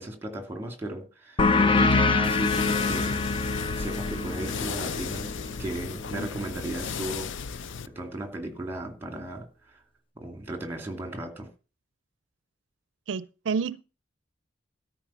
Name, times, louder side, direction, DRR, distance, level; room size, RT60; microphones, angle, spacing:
voice 1, 0.0-5.3 5.6-7.3 7.9-9.8 10.2-11.5, right 1 dB, 10° right, 2.5 m, -36 dB
sound 1, 1.4-6.6, left 3 dB, 30° left, 0.7 m, -25 dB
sound 2, 2.2-7.9, left 6 dB, 90° left, 0.5 m, -35 dB
voice 2, 13.1-13.8, right 5 dB, 85° right, 0.4 m, -29 dB
13.0 x 5.1 x 7.1 m
head